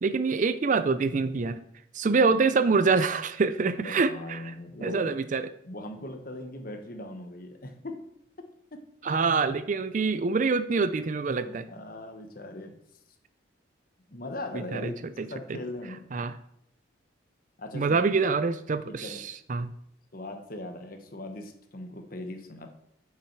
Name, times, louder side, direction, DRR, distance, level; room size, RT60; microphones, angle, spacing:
voice 1, 0.0-1.6 1.9-4.4 4.8-5.4 9.0-11.6 14.7-14.9 15.2-15.3 16.1-16.3 17.7-19.7, right 4 dB, 40° right, 13 dB, 0.4 m, -25 dB
voice 2, 3.8-5.2 5.6-8.0 8.4-8.9 11.4-12.8 14.1-16.0 17.6-18.1 18.9-19.2 20.1-22.7, left 1 dB, 45° left, 6 dB, 1.1 m, -40 dB
8.2 x 7.4 x 4.6 m, 0.73 s
head